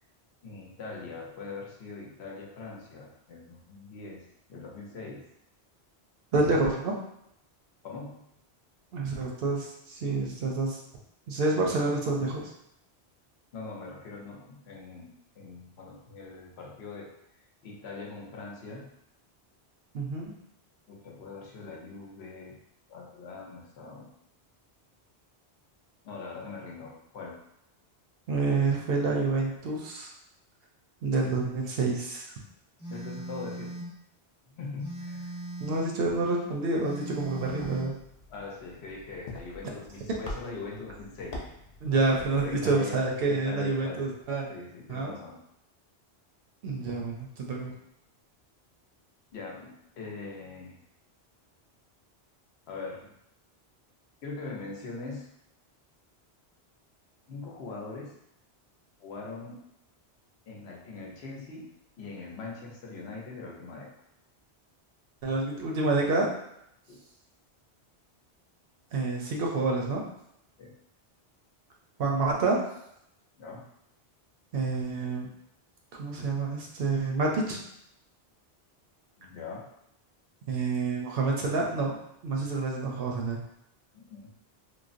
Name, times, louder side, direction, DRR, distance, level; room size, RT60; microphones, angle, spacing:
voice 1, 0.4-5.3 7.8-8.2 13.5-15.1 15.4-17.1 17.6-18.9 20.9-22.5 22.9-24.1 26.0-27.4 32.9-33.7 34.6-35.4 38.3-41.5 41.9-43.0 43.3-44.2 44.5-45.4 49.3-50.8 52.7-53.1 54.2-55.3 57.3-58.1 59.0-59.6 60.5-61.7 62.0-63.9 66.9-67.0 70.6-70.8 73.4-73.6 79.2-79.7 83.9-84.3, left 4 dB, 80° left, -2 dB, 0.9 m, -41 dB
voice 2, 6.3-6.9 8.9-10.8 11.3-12.5 19.9-20.3 28.3-30.1 31.0-32.3 35.6-38.0 41.8-44.5 44.9-45.1 46.6-47.7 65.2-66.3 68.9-70.0 72.0-72.6 74.5-75.3 76.0-77.6 80.5-82.0 82.2-83.4, right 3 dB, 70° right, -1 dB, 0.7 m, -28 dB
Telephone, 32.8-33.9 34.8-36.0 36.8-38.0, right 1 dB, 15° left, 0.7 m, -39 dB
sound 1, 37.2-42.8, left 1 dB, 50° left, 0.5 m, -45 dB
3.1 x 2.0 x 2.5 m, 0.77 s
omnidirectional pair, 1.1 m